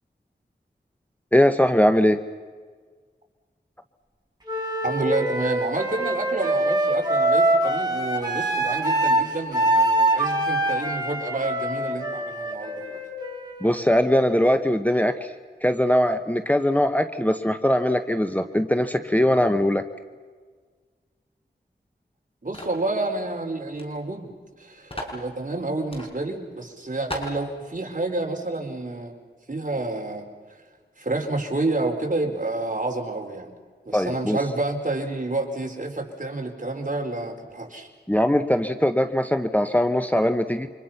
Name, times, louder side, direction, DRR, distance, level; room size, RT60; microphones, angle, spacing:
voice 1, 1.3-2.2 13.6-15.3 15.6-19.8 33.9-34.4 38.1-40.7, left 1 dB, 10° left, 7 dB, 1.2 m, -21 dB
Wind instrument woodwind instrument, 4.4-14.3, right 1 dB, 25° right, 6.8 m, -24 dB
voice 2, 4.8-13.0 22.4-29.1 29.5-30.3 31.0-33.5 33.9-37.9, right 2 dB, 45° right, 2 dB, 4.5 m, -29 dB
sound 1, 22.5-22.8 23.7-23.9 24.1-24.2 24.9-25.2 25.9-26.1 26.6-26.7 27.1-27.4, equal, 30° left, 5.6 m, -34 dB
29.5 x 26.0 x 5.8 m, 1.5 s
wide cardioid pair, 55°, 18 cm